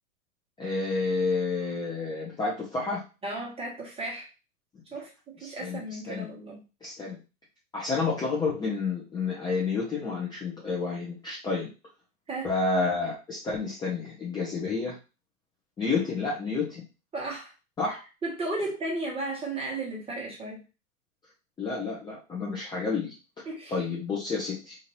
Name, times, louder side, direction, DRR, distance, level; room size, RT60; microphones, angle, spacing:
voice 1, 0.6-3.0 5.4-6.3 6.8-7.2 7.7-11.7 12.4-15.0 15.8-16.8 17.8-18.0 21.6-23.4 23.7-24.8, left 4 dB, 10° left, -5 dB, 0.6 m, -30 dB
voice 2, 3.2-4.3 4.9-6.6 12.3-12.5 17.1-17.5 18.2-20.6 23.5-23.8, right 2 dB, 15° right, -2 dB, 1.1 m, -34 dB
2.8 x 2.5 x 3.0 m, 0.30 s
hypercardioid pair, 110°, 43 cm